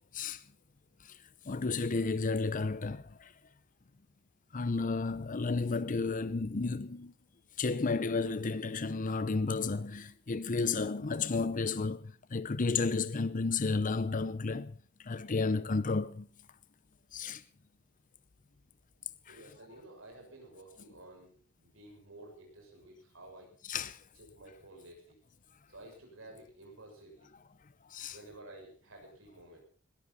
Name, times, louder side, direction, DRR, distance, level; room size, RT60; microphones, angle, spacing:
voice 1, 1.5-3.3 4.5-7.1 7.6-14.8 15.0-16.3 17.1-17.4 19.3-19.4 23.7-24.0 27.9-28.2, left 4 dB, 40° left, 0.7 m, -32 dB
voice 2, 19.3-21.3 21.6-23.5 24.1-25.2 25.7-27.3 28.1-29.6, right 1 dB, 75° right, 6.9 m, -52 dB
20.5 x 14.0 x 4.1 m
head